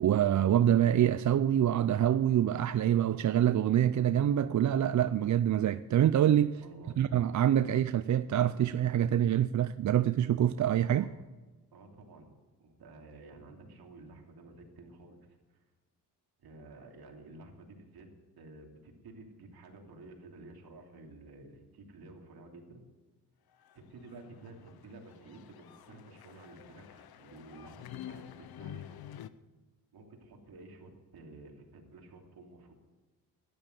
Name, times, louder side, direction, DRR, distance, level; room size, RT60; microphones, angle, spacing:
voice 1, 0.0-6.6 7.0-11.1, right 10 dB, 45° right, 0.5 m, -26 dB
voice 2, 6.6-7.0 10.9-11.1 11.7-12.3 12.6-15.2 15.5-15.6 16.4-18.1 18.4-22.8 23.7-29.1 29.9-32.7, right 2 dB, 65° right, 3.0 m, -52 dB
sound 1, 23.6-29.3, left 11 dB, 65° left, 0.8 m, -48 dB
12.5 x 10.5 x 8.2 m
cardioid pair, 85°, 40 cm